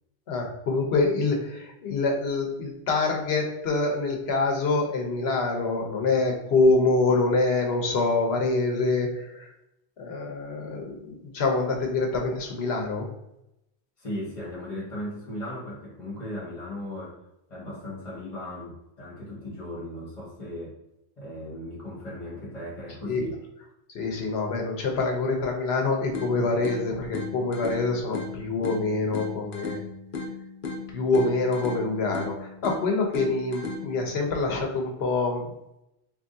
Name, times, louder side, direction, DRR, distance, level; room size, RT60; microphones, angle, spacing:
voice 1, 0.3-9.5 10.0-13.1 23.0-23.2 23.9-29.8 30.9-35.5, left 3 dB, 80° left, 2 dB, 1.0 m, -25 dB
voice 2, 14.0-17.2 17.5-20.8 21.2-23.4, left 1 dB, 30° left, -5 dB, 1.3 m, -37 dB
sound 1, 26.1-34.1, left 3 dB, 60° left, 0.8 m, -36 dB
3.6 x 3.2 x 2.6 m, 0.86 s
omnidirectional pair, 1.1 m